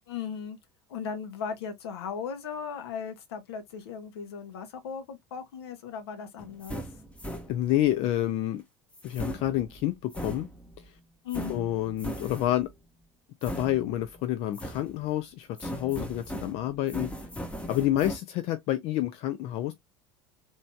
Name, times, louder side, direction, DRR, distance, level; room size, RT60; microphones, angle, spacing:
voice 1, 0.1-0.6 0.9-6.8 11.2-11.6, left 7 dB, 65° left, 0.8 m, -37 dB
sound 1, 6.4-7.9 8.9-10.9 11.3-12.7 13.4-14.2 14.5-15.2 15.6-18.2, equal, 10° left, 0.7 m, -39 dB
voice 2, 7.5-8.6 9.0-10.5 11.5-12.7 13.4-17.3 17.7-19.7, left 13 dB, 45° left, 0.4 m, -28 dB
3.0 x 2.6 x 2.2 m
figure-of-eight pair, 70°, 14 cm